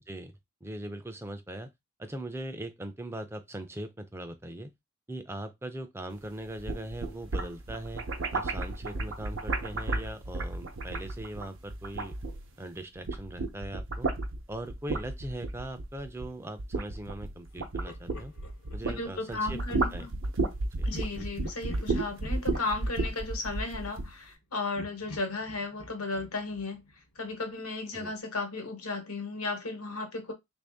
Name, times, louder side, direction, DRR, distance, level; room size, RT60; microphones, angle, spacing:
voice 1, 0.6-1.7 2.0-4.7 5.1-8.1 8.3-12.1 12.6-14.1 14.5-18.3 18.7-20.1 20.8-20.9 27.9-28.1, right 1 dB, 10° right, 0.4 m, -40 dB
sound 1, 6.5-12.7 13.0-19.0 19.3-24.1, right 2 dB, 60° right, 0.7 m, -33 dB
Laughter, 17.6-19.7 20.9-24.4 24.8-27.5, equal, 65° left, 0.8 m, -48 dB
voice 2, 18.9-20.1 20.8-26.8 27.1-30.3, left 3 dB, 85° left, 1.1 m, -35 dB
3.4 x 2.6 x 3.5 m
head